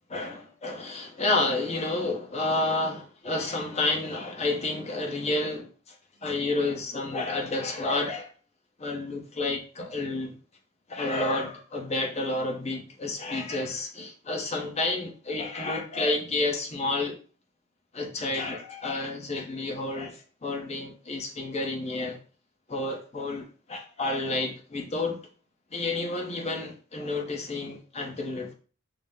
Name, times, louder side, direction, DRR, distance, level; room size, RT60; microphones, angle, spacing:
voice 1, 0.1-8.3 8.8-10.3 10.9-17.2 17.9-22.2 22.7-25.2 25.7-28.5, left 2 dB, 30° left, 0.9 m, -30 dB
5.8 x 2.1 x 3.5 m
head